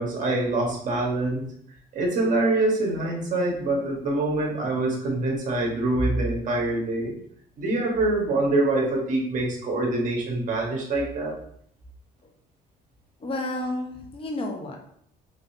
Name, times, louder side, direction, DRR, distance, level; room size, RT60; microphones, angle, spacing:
voice 1, 0.0-1.4 1.9-7.1 7.6-11.3, right 2 dB, 50° right, -1 dB, 1.4 m, -25 dB
voice 2, 13.2-14.8, left 1 dB, 30° left, 1 dB, 0.9 m, -31 dB
4.0 x 3.2 x 2.7 m, 0.67 s
cardioid pair, 110°, 17 cm